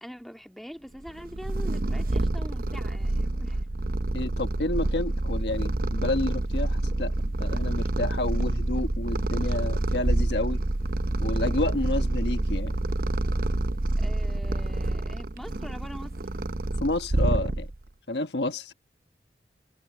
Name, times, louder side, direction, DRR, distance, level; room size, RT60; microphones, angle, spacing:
voice 1, 0.0-3.7 14.0-16.2, equal, ahead, 1.9 m, -43 dB
Purr, 1.1-17.9, right 2 dB, 55° right, 0.8 m, -27 dB
voice 2, 4.1-10.6 11.2-12.8 16.8-17.7 18.1-18.7, left 2 dB, 70° left, 1.3 m, -30 dB
head